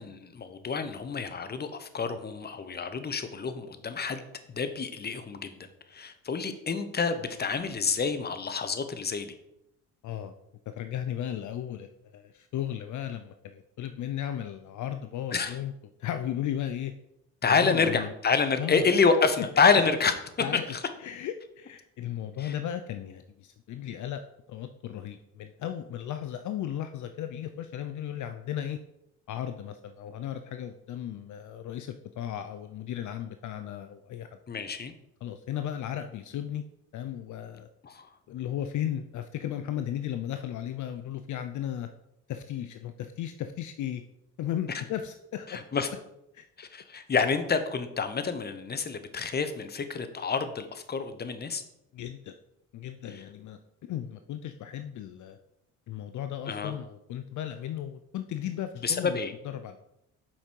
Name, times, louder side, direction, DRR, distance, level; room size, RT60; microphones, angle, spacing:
voice 1, 0.0-4.2 4.5-5.6 5.9-9.3 15.3-15.6 17.4-20.1 20.7-20.8 22.4-22.5 34.5-34.9 37.8-38.1 45.5-45.9 46.6-51.6 56.5-56.7 58.8-59.3, left 5 dB, 30° left, 10 dB, 1.0 m, -28 dB
voice 2, 10.0-10.3 10.7-15.7 16.0-16.9 17.5-18.1 18.6-18.9 20.4-20.7 21.0-24.2 24.5-28.8 29.3-34.3 35.2-36.6 36.9-37.7 38.3-41.9 42.3-44.0 44.4-45.6 46.3-46.4 51.9-52.3 52.7-53.6 53.9-55.4 55.9-59.2 59.4-59.8, left 10 dB, 60° left, 9 dB, 0.6 m, -35 dB
7.2 x 5.1 x 4.6 m, 0.81 s
supercardioid pair, 80°, 34 cm